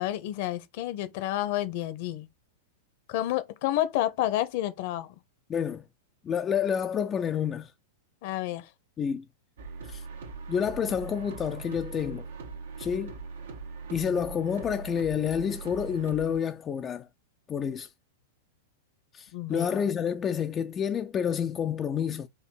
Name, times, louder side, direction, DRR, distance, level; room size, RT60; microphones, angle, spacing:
voice 1, 0.0-2.3 3.1-5.1 8.2-8.7 19.3-19.7, left 14 dB, 55° left, 0.8 m, -30 dB
voice 2, 5.5-5.8 6.2-7.7 9.0-9.3 9.9-10.0 10.5-12.3 12.8-13.1 13.9-17.1 17.5-17.9 19.1-22.3, left 8 dB, 25° left, 0.4 m, -29 dB
sound 1, 9.6-16.4, right 4 dB, 75° right, 1.0 m, -41 dB
4.5 x 2.7 x 4.0 m
hypercardioid pair, 100°, 0 cm